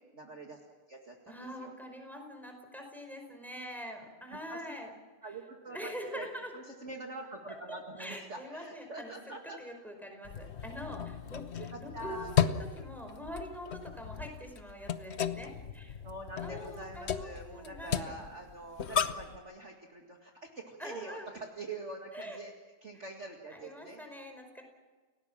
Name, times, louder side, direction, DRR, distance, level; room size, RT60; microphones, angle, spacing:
voice 1, 0.1-0.6 0.9-1.7 4.3-4.6 5.2-6.3 6.5-9.6 11.6-12.3 16.0-22.5 22.8-24.0, right 2 dB, 35° right, 1 dB, 2.2 m, -45 dB
voice 2, 1.3-4.9 5.7-6.5 8.0-9.1 9.6-16.0 16.4-18.1 20.8-21.3 22.1-22.4 23.5-24.6, equal, ahead, 3 dB, 4.9 m, -44 dB
sound 1, 10.2-19.4, left 8 dB, 50° left, 0.8 m, -35 dB
30.0 x 18.0 x 7.5 m, 1.4 s
omnidirectional pair, 2.3 m